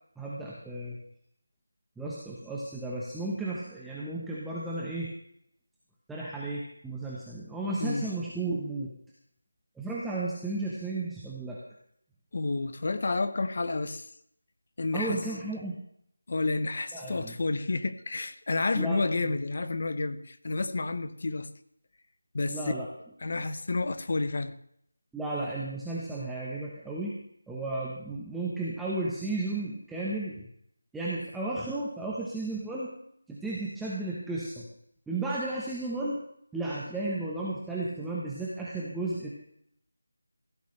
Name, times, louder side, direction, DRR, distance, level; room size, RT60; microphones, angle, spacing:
voice 1, 0.2-1.0 2.0-5.1 6.1-8.9 9.8-11.6 14.9-15.7 16.9-17.3 18.7-19.3 22.5-22.9 23.3-23.5 25.1-27.1 27.5-30.5 30.9-32.9 33.3-34.7 35.1-36.2 36.5-39.3, right 2 dB, ahead, -7 dB, 1.0 m, -34 dB
voice 2, 12.3-14.1 14.8-15.2 16.3-21.5 22.3-22.7 23.2-24.5, left 3 dB, 40° left, 11 dB, 1.0 m, -30 dB
15.5 x 14.5 x 3.3 m, 0.70 s
figure-of-eight pair, 175°, 0 cm